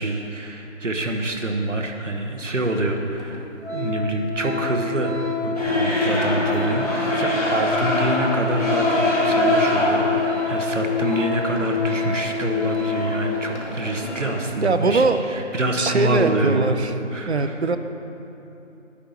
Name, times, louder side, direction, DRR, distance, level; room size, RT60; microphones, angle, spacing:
voice 1, 0.0-3.5 3.7-5.1 5.4-16.7 17.1-17.6, right 1 dB, 75° right, 3 dB, 1.1 m, -26 dB
Organ, 2.6-2.7 3.2-3.4 3.6-13.2 13.5-13.7, left 6 dB, 60° left, 1.5 m, -27 dB
sound 1, 5.5-14.3, equal, 30° left, 1.9 m, -25 dB
voice 2, 14.6-15.2 15.8-16.9 17.3-17.8, right 4 dB, 60° right, 9 dB, 0.6 m, -21 dB
9.9 x 4.4 x 7.0 m, 2.9 s
figure-of-eight pair, 170°, 37 cm